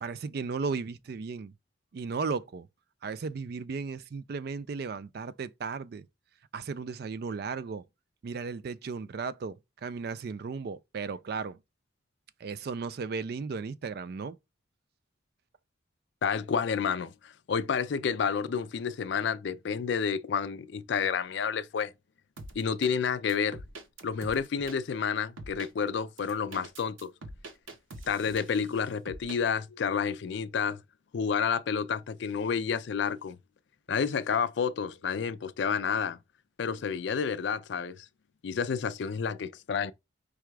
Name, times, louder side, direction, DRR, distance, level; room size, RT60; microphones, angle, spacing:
voice 1, 0.0-1.5 1.9-2.7 3.0-6.1 6.5-7.8 8.2-11.6 12.4-14.4, right 5 dB, 50° right, 0.3 m, -35 dB
voice 2, 16.2-21.9 22.6-23.6 24.0-27.1 28.1-30.8 31.1-33.4 33.9-36.2 36.6-38.1 38.4-39.9, left 6 dB, 60° left, 0.4 m, -30 dB
sound 1, 22.4-22.9 23.3-24.8 25.4-25.7 26.2-28.7 29.1-29.4, right 2 dB, 80° right, 1.0 m, -44 dB
4.8 x 2.3 x 4.6 m
head